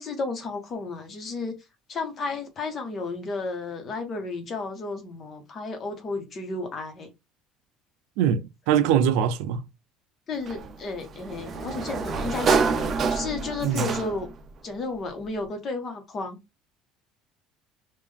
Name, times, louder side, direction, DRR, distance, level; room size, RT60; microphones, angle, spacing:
voice 1, 0.0-1.5 1.9-7.1 10.3-14.3 14.6-16.4, left 3 dB, 40° left, 1.2 m, -33 dB
voice 2, 8.2-9.6 13.6-13.9, right 8 dB, 85° right, 0.4 m, -23 dB
Sliding door, 10.5-14.4, right 5 dB, 35° right, 0.6 m, -27 dB
3.6 x 2.5 x 3.5 m
cardioid pair, 125°, 0 cm